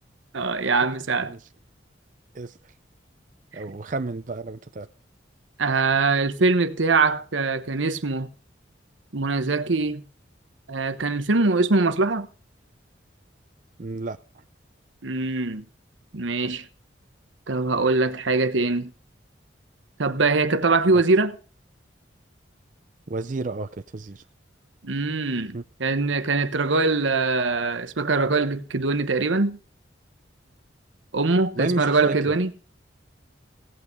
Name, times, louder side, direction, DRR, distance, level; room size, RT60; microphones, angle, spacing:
voice 1, 0.3-1.3 5.6-8.3 9.1-10.0 10.7-12.3 15.0-15.6 16.1-16.6 17.5-18.9 20.0-21.4 24.8-29.6 31.1-32.5, right 3 dB, 80° right, 1.0 m, -22 dB
voice 2, 3.5-4.9 13.8-14.2 23.1-24.2 25.5-25.6 31.6-32.3, right 2 dB, 40° right, 0.5 m, -31 dB
16.5 x 8.5 x 5.3 m
head